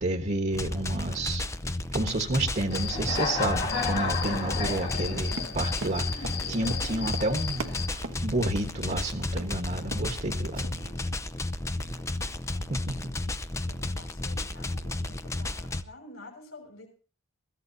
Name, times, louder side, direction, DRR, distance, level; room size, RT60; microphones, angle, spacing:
voice 1, 0.0-1.4 1.9-7.6 8.2-10.8 11.9-12.0 12.7-13.0, right 2 dB, 40° right, 4 dB, 1.4 m, -30 dB
sound 1, 0.5-15.8, left 2 dB, 15° left, 0.6 m, -33 dB
Human voice / Cricket, 2.7-7.9, left 5 dB, 50° left, 1.9 m, -33 dB
Run, 5.3-9.1 9.4-9.5 9.8-10.2 10.6-10.7, right 2 dB, 70° right, 1.3 m, -39 dB
voice 2, 6.8-7.4 10.6-11.4 11.7-13.3 13.7-16.9, left 1 dB, 70° left, -1 dB, 6.3 m, -48 dB
22.5 x 15.5 x 2.8 m, 0.40 s
head